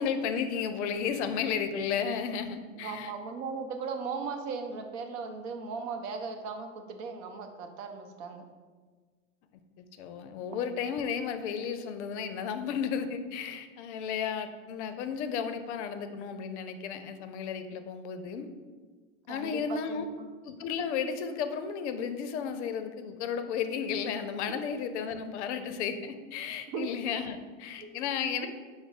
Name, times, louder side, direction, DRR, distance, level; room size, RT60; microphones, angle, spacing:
voice 1, 0.0-3.1 9.5-18.5 19.3-20.1 20.4-28.5, left 7 dB, 65° left, 9 dB, 0.5 m, -33 dB
voice 2, 2.8-8.4 19.3-20.3 26.7-26.9 27.8-27.9 28.3-28.5, right 5 dB, 50° right, 6 dB, 0.6 m, -37 dB
5.7 x 2.0 x 4.1 m, 1.5 s
hypercardioid pair, 100°, 37 cm